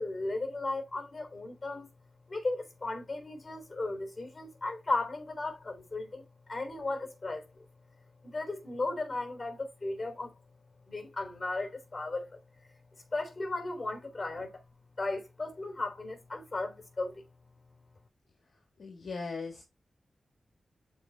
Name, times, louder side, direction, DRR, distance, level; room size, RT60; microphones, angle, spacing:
voice 1, 0.0-1.9 2.3-7.6 8.2-10.3 10.9-12.4 13.1-14.5 15.0-17.2, left 2 dB, 30° left, 3.5 m, -35 dB
voice 2, 18.5-19.6, left 4 dB, 60° left, 1.7 m, -40 dB
12.0 x 4.6 x 2.3 m
wide cardioid pair, 100°, 0 cm